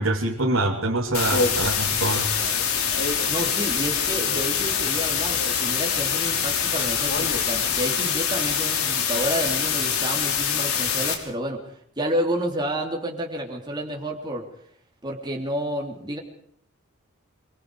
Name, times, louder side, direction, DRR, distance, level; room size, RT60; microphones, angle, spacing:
voice 1, 0.0-2.3, right 2 dB, 75° right, -1 dB, 3.1 m, -24 dB
sound 1, 1.1-11.1, left 7 dB, 90° left, 5.3 m, -25 dB
sound 2, 1.1-7.9, left 1 dB, 50° left, 3.6 m, -34 dB
voice 2, 3.0-14.5 15.0-16.2, equal, 20° right, 0 dB, 3.3 m, -30 dB
25.0 x 24.5 x 5.0 m, 0.65 s
head